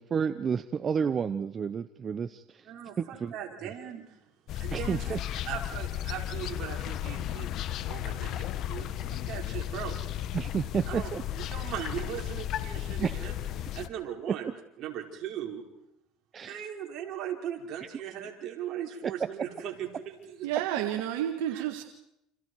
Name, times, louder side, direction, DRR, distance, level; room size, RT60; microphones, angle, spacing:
voice 1, 0.0-3.3 3.6-3.7 4.7-5.2 10.3-11.2 13.0-13.4 14.3-14.5 16.3-16.7 17.8-17.9 19.0-19.3 20.5-20.6, right 7 dB, 35° right, 12 dB, 0.8 m, -31 dB
voice 2, 2.7-4.2 4.6-5.2 5.4-7.5 7.9-10.0 10.9-11.1 11.4-13.3 13.6-14.5 14.8-15.6 16.4-20.4 21.5-21.6, right 9 dB, 55° right, 1 dB, 5.1 m, -39 dB
sound 1, 4.5-13.9, left 12 dB, 55° left, 1.2 m, -34 dB
sound 2, 7.1-13.1, left 8 dB, 75° left, 5.0 m, -53 dB
voice 3, 20.4-21.8, right 11 dB, 85° right, 5 dB, 1.9 m, -30 dB
29.5 x 27.5 x 4.8 m, 0.82 s
supercardioid pair, 110°, 0 cm